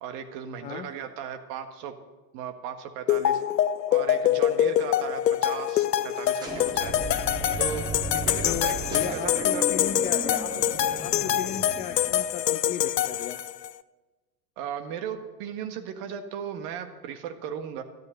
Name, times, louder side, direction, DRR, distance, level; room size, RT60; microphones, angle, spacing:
voice 1, 0.0-1.9 2.3-3.4 3.9-6.9 7.6-7.8 8.1-9.7 14.6-17.8, right 8 dB, 45° right, 8 dB, 1.6 m, -36 dB
sound 1, 3.1-13.7, left 11 dB, 80° left, 0.6 m, -25 dB
sound 2, 6.4-12.3, right 1 dB, 10° right, 4.1 m, -35 dB
voice 2, 8.4-10.6 11.0-13.4, left 9 dB, 20° left, 8 dB, 0.3 m, -35 dB
13.0 x 11.0 x 6.5 m, 1.2 s
figure-of-eight pair, 90°, 49 cm